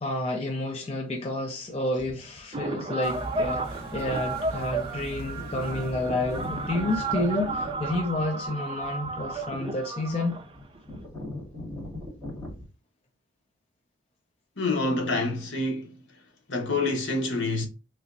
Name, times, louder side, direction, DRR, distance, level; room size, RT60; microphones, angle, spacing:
voice 1, 0.0-10.4, left 2 dB, 30° left, 0.5 m, -30 dB
sound 1, 2.0-2.4 3.5-3.6 4.2-4.6 4.9-5.0 5.2-12.6, left 1 dB, 5° left, 2.0 m, -41 dB
sound 2, 2.5-11.0, right 3 dB, 25° right, 0.4 m, -33 dB
sound 3, 3.0-8.0, right 1 dB, 55° right, 0.9 m, -41 dB
voice 2, 14.6-15.9 16.5-17.7, left 2 dB, 65° left, 1.0 m, -27 dB
3.3 x 2.9 x 2.5 m
head